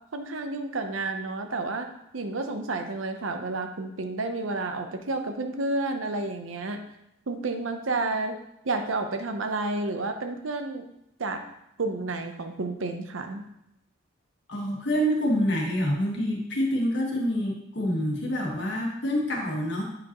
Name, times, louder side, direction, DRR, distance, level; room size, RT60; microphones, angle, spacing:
voice 1, 0.1-6.8 7.3-8.4 8.6-10.8 11.2-11.4 11.8-13.5, right 2 dB, 80° right, 6 dB, 0.7 m, -30 dB
voice 2, 14.5-19.8, equal, 60° left, -2 dB, 1.5 m, -27 dB
8.5 x 5.0 x 3.0 m, 0.80 s
head